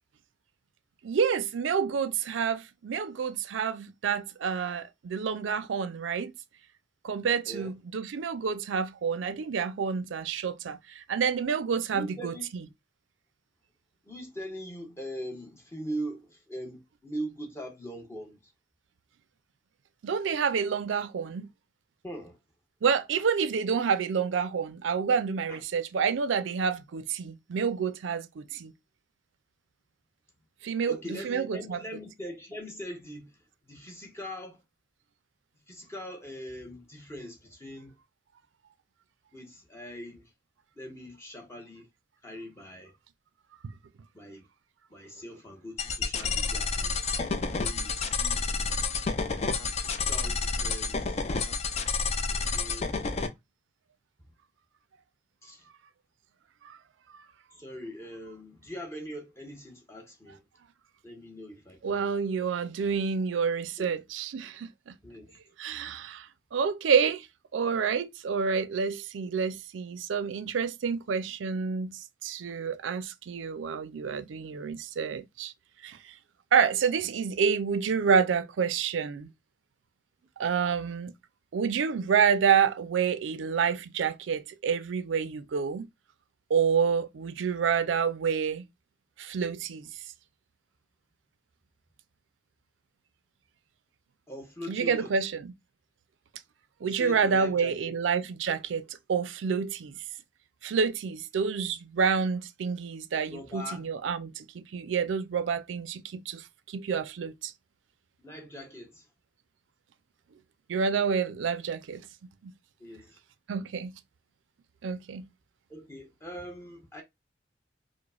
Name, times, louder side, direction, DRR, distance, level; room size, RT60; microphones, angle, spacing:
voice 1, 1.0-6.3 7.0-12.3 20.0-21.5 22.8-28.7 30.6-31.8 43.6-43.7 56.6-56.8 61.8-64.9 65.6-67.3 67.5-75.5 75.8-76.1 76.5-79.3 80.4-81.1 81.5-85.9 86.5-88.6 89.2-89.9 94.7-95.5 96.8-100.0 100.6-107.5 110.7-112.1 112.4-112.5 113.5-113.9 114.8-115.3, right 6 dB, 80° right, 0.4 m, -28 dB
voice 2, 11.9-12.5 14.0-18.5 22.0-22.4 25.5-25.6 30.9-34.6 35.7-38.0 39.3-40.3 40.8-41.9 42.2-42.9 44.1-44.5 44.9-47.0 47.6-49.0 49.6-51.3 52.3-52.9 55.4-55.7 57.5-60.4 61.0-62.2 63.8-63.9 65.0-65.4 94.3-95.1 96.8-97.9 103.3-103.9 108.2-109.1 112.8-113.2 115.7-117.0, equal, 15° left, 0.8 m, -41 dB
sound 1, 45.8-53.3, left 4 dB, 35° left, 0.4 m, -29 dB
4.7 x 2.1 x 2.3 m
head